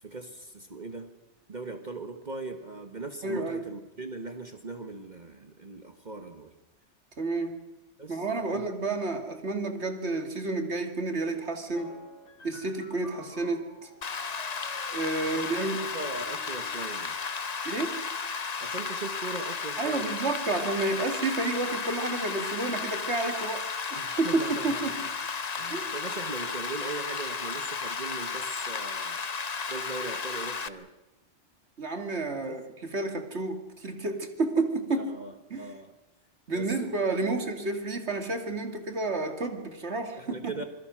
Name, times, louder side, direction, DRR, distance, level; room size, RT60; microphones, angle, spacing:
voice 1, 0.0-1.1 1.5-6.5 8.0-8.6 15.2-15.5 15.9-17.2 18.6-20.1 23.9-25.0 25.5-29.3 29.7-30.9 32.4-32.6 35.0-35.9 36.5-37.4 40.2-40.6, right 3 dB, 40° right, 6 dB, 1.5 m, -40 dB
voice 2, 3.2-3.6 7.2-7.6 8.1-12.0 12.4-13.9 14.9-15.9 17.6-18.0 19.8-25.0 25.7-25.9 31.8-35.1 35.5-35.7 36.5-40.5, right 3 dB, 65° right, 5 dB, 2.5 m, -30 dB
sound 1, 11.7-17.0, left 1 dB, 70° left, 4.3 m, -50 dB
Rain, 14.0-30.7, left 5 dB, 40° left, 0.9 m, -34 dB
27.0 x 21.0 x 6.2 m, 0.99 s
omnidirectional pair, 1.2 m